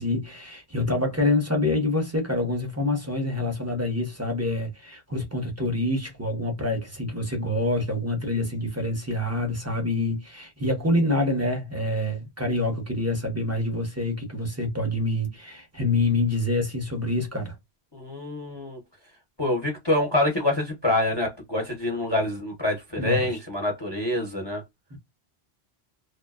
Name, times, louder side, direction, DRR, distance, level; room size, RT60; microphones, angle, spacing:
voice 1, 0.0-17.5 23.0-23.4 24.9-25.0, left 2 dB, 20° right, 0.5 m, -26 dB
voice 2, 17.9-18.8 19.4-24.6, left 1 dB, 30° left, 0.6 m, -26 dB
2.6 x 2.2 x 2.3 m
omnidirectional pair, 1.1 m